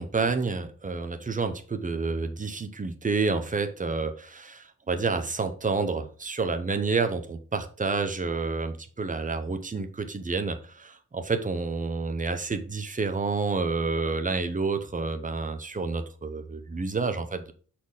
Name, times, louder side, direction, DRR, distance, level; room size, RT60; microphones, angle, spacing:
voice 1, 0.0-17.5, right 4 dB, 25° right, 7 dB, 0.6 m, -29 dB
5.6 x 4.3 x 4.8 m, 0.41 s
wide cardioid pair, 175°, 32 cm